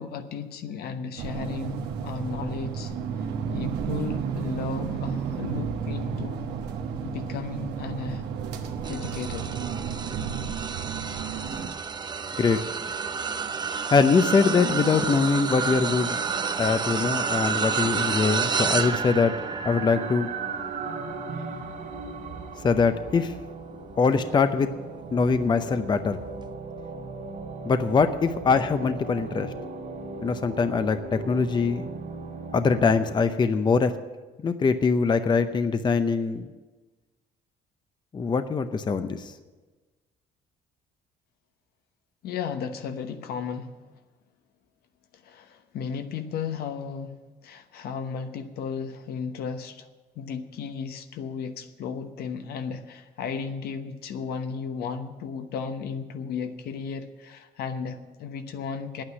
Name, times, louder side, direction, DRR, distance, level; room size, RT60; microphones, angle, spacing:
voice 1, 0.0-2.9 3.5-6.5 7.0-8.3 8.9-9.5 42.2-43.7 45.2-47.2 47.4-49.9 50.1-59.0, left 6 dB, 70° left, 8 dB, 1.0 m, -34 dB
sound 1, 1.2-11.7, right 7 dB, 85° right, 1.3 m, -32 dB
sound 2, 8.8-24.3 24.9-25.1 26.4-26.5, right 5 dB, 25° right, 0.7 m, -31 dB
voice 2, 13.9-16.2 16.6-19.3 19.6-20.3 22.6-23.3 24.0-24.7 25.1-26.2 27.6-29.5 30.2-31.9 32.5-33.9 34.4-36.5 38.1-39.3, left 5 dB, 25° left, 10 dB, 0.6 m, -23 dB
sound 3, 16.0-33.1, right 5 dB, 55° right, 2.6 m, -37 dB
9.5 x 8.9 x 9.5 m, 1.2 s
cardioid pair, 110°, 17 cm